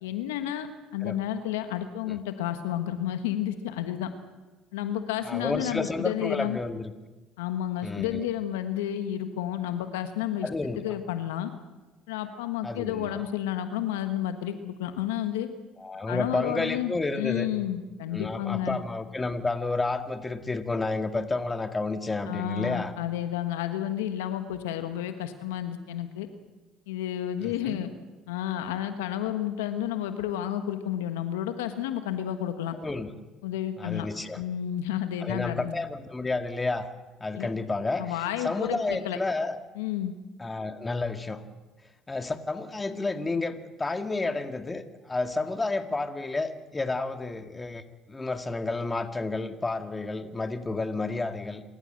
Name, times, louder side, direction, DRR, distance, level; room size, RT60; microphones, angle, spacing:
voice 1, 0.0-4.1 4.7-6.6 7.4-10.5 10.8-11.5 12.1-15.5 16.1-16.9 17.2-18.8 22.3-26.3 26.9-27.9 28.3-32.8 33.4-34.1 34.4-35.7 37.4-37.5 38.0-39.2 39.8-40.1, left 11 dB, 85° left, 8 dB, 1.3 m, -31 dB
voice 2, 5.2-6.9 7.8-8.3 10.4-11.0 12.6-13.2 15.8-17.5 18.1-22.9 27.4-27.8 32.8-33.1 33.8-34.4 35.2-36.9 37.2-39.6 40.4-41.4 42.1-47.8 48.1-51.6, left 3 dB, 20° left, 7 dB, 2.0 m, -31 dB
27.0 x 14.5 x 7.8 m, 1.2 s
hypercardioid pair, 65°, 0 cm